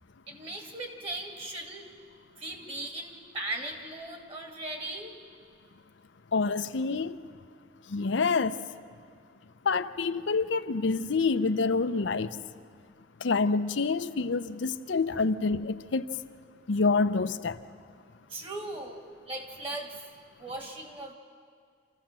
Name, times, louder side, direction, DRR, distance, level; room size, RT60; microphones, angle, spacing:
voice 1, 0.3-1.9 2.4-5.1 15.1-15.2 18.3-19.9 20.4-21.1, right 2 dB, 30° right, 3 dB, 2.4 m, -38 dB
voice 2, 6.3-7.2 7.9-8.6 9.6-12.3 13.2-16.1 16.7-17.6, left 4 dB, 85° left, 11 dB, 0.6 m, -27 dB
26.5 x 15.0 x 7.4 m, 2.1 s
head